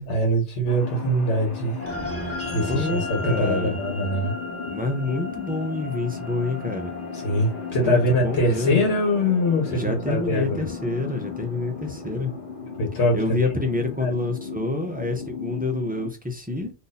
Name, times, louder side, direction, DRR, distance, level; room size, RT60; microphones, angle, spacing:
voice 1, 0.0-1.8 2.2-4.3 7.1-10.6 12.8-13.2 13.4-13.5 14.0-14.1, equal, 75° left, 1.2 m, -23 dB
sound 1, 0.7-16.1, left 6 dB, 50° left, 0.9 m, -36 dB
sound 2, 1.8-12.4, left 1 dB, 15° left, 0.8 m, -36 dB
voice 2, 2.7-3.7 4.7-6.9 7.8-8.9 9.7-12.3 13.1-16.7, left 2 dB, 15° right, 0.3 m, -27 dB
2.7 x 2.6 x 4.0 m
omnidirectional pair, 1.2 m